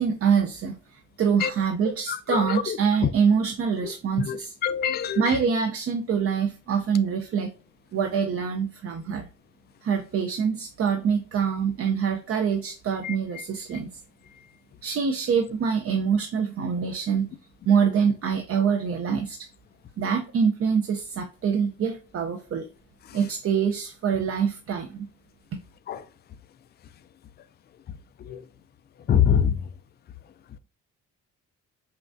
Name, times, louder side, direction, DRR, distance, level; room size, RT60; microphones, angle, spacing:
voice 1, 0.0-4.5 5.2-7.5 7.9-9.3 9.8-14.0 14.8-17.3 17.7-19.5 20.0-22.7 23.1-25.1, right 6 dB, 50° right, 0.6 m, -25 dB
voice 2, 2.1-2.8 3.0-3.1 4.2-5.2 13.0-13.1 25.9-26.0 28.3-28.4 29.1-29.6, left 8 dB, 35° left, 0.4 m, -24 dB
5.7 x 2.4 x 2.6 m
cardioid pair, 90°, 30 cm